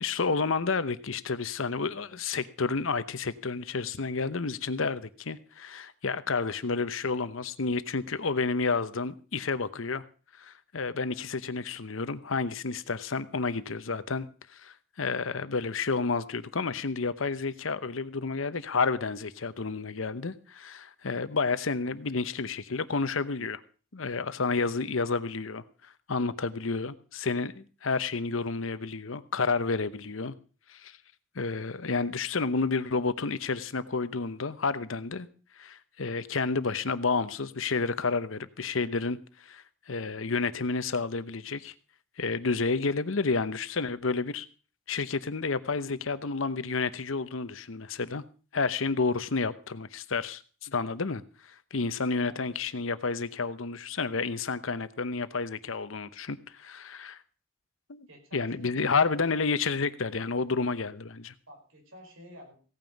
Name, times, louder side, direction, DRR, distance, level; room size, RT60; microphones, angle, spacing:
voice 1, 0.0-10.0 10.4-14.3 14.5-23.6 23.9-25.6 26.1-30.3 30.7-30.9 31.4-35.3 35.6-39.2 39.5-41.7 42.2-44.5 44.9-48.2 48.5-51.2 51.7-57.2 57.9-58.1 58.3-61.3, left 4 dB, 80° left, 14 dB, 0.9 m, -30 dB
voice 2, 52.2-52.6 58.1-59.1 61.5-62.5, equal, 85° right, 2 dB, 5.2 m, -51 dB
16.5 x 9.4 x 5.3 m, 0.38 s
head